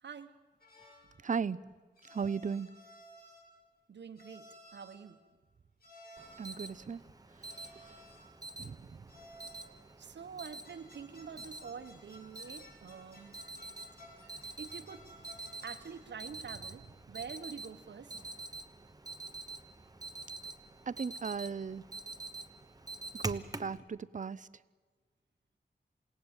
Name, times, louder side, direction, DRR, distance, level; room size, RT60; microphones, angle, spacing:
voice 1, 0.0-0.3 3.9-4.4 4.7-5.2 10.0-13.3 14.6-15.0 15.6-18.1, right 6 dB, 85° right, 9 dB, 1.3 m, -46 dB
sound 1, 0.6-1.1 2.0-3.6 4.2-5.1 5.8-6.7 7.4-8.4 9.1-9.8 10.4-16.1, equal, 60° left, 6.5 m, -57 dB
voice 2, 1.2-1.6 2.1-2.7 6.4-7.0 8.6-8.8 20.9-21.8 23.2-24.5, right 6 dB, 45° right, 18 dB, 0.7 m, -36 dB
Alarm, 6.2-23.8, right 2 dB, 20° right, 1.1 m, -47 dB
28.5 x 17.5 x 9.0 m, 1.5 s
wide cardioid pair, 115°, 18 cm